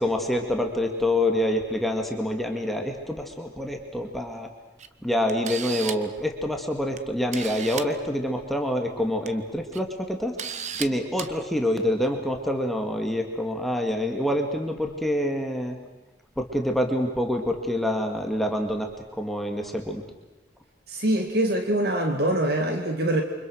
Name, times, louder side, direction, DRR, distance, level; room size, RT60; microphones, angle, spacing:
voice 1, 0.0-4.5 5.0-10.3 10.8-15.8 16.4-20.0, left 1 dB, ahead, 3 dB, 2.1 m, -26 dB
Camera, 4.8-4.9 5.3-6.1 7.0-7.1 7.3-7.9 9.0-9.3 9.7-9.8 10.4-10.9 11.2-11.3, right 7 dB, 40° right, 1.2 m, -33 dB
voice 2, 20.9-23.2, right 1 dB, 60° right, 4 dB, 2.2 m, -24 dB
29.0 x 25.0 x 6.4 m, 1.1 s
head